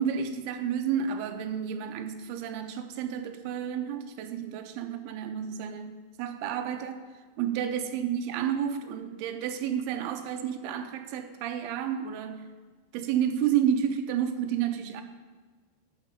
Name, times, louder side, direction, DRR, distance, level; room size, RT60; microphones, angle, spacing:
voice 1, 0.0-7.0 7.4-12.5 12.9-15.0, right 8 dB, 80° right, 6 dB, 2.4 m, -30 dB
12.0 x 4.2 x 6.6 m, 1.4 s
omnidirectional pair, 4.9 m